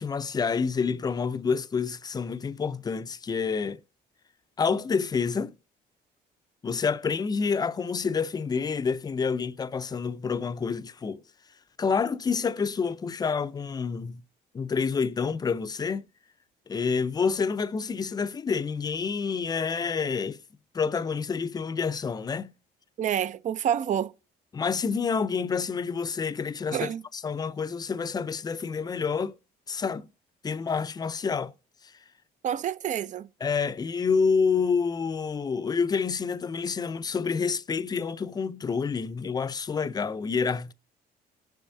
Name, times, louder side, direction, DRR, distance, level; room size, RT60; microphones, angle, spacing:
voice 1, 0.0-3.8 4.6-5.6 6.6-11.2 11.8-14.2 14.5-16.0 16.7-20.4 20.7-22.5 24.5-29.3 29.7-30.1 30.4-31.5 33.4-40.7, left 5 dB, 25° left, 0.5 m, -28 dB
voice 2, 23.0-24.1 26.7-27.0 32.4-33.3, right 9 dB, 45° right, 0.5 m, -28 dB
18.5 x 7.0 x 2.7 m
cardioid pair, 110°, 17 cm